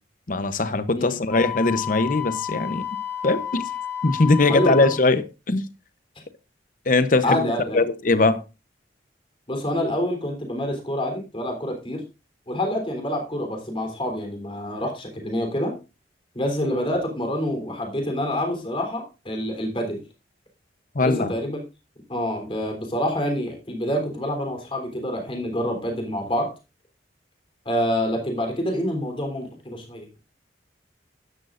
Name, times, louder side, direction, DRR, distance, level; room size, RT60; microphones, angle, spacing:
voice 1, 0.3-2.9 3.2-3.7 4.0-5.7 6.9-7.4 7.7-8.4 20.9-21.3, left 3 dB, 45° left, 0.8 m, -21 dB
Wind instrument woodwind instrument, 1.3-5.0, left 10 dB, 5° left, 3.2 m, -31 dB
voice 2, 4.5-4.9 7.2-7.8 9.5-12.0 12.5-15.7 16.3-20.1 21.0-21.6 22.1-26.5 27.7-30.1, equal, 30° left, 3.5 m, -27 dB
13.0 x 11.0 x 2.6 m
head